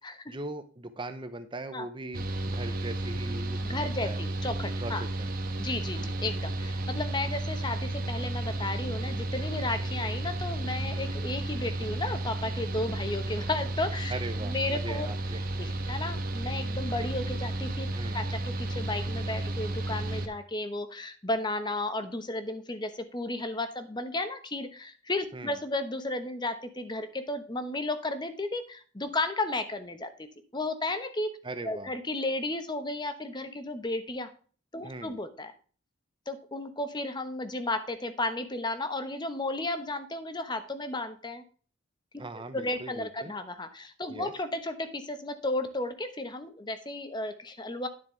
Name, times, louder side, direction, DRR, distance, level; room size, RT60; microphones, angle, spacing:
voice 1, 0.3-4.2 4.8-5.3 6.0-6.2 14.1-15.4 17.9-18.2 25.3-25.6 31.4-31.9 34.8-35.2 42.2-43.3 44.1-44.3, right 2 dB, 25° right, 10 dB, 0.7 m, -40 dB
Mechanical fan, 2.1-20.3, right 1 dB, 50° right, 1.2 m, -33 dB
voice 2, 3.6-5.0 5.6-15.1 15.6-17.9 18.1-30.3 30.5-31.4 31.6-34.3 34.7-35.5 36.3-41.4 42.3-47.9, left 2 dB, 25° left, 9 dB, 1.0 m, -33 dB
9.8 x 7.3 x 3.2 m, 0.40 s
head